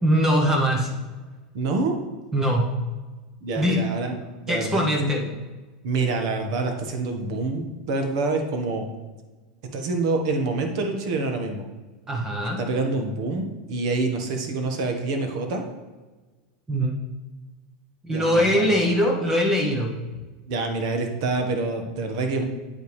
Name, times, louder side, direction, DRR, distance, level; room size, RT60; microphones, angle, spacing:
voice 1, 0.0-1.0 2.3-2.8 3.6-3.8 4.5-5.2 12.1-12.6 16.7-17.0 18.0-20.0, equal, 10° right, 1 dB, 0.8 m, -22 dB
voice 2, 1.5-2.0 3.4-4.2 4.4-5.3 5.8-8.9 9.7-11.6 12.6-15.6 18.1-18.7 20.5-22.4, right 3 dB, 55° right, 4 dB, 1.4 m, -26 dB
9.0 x 8.0 x 3.3 m, 1.3 s
supercardioid pair, 170°, 4 cm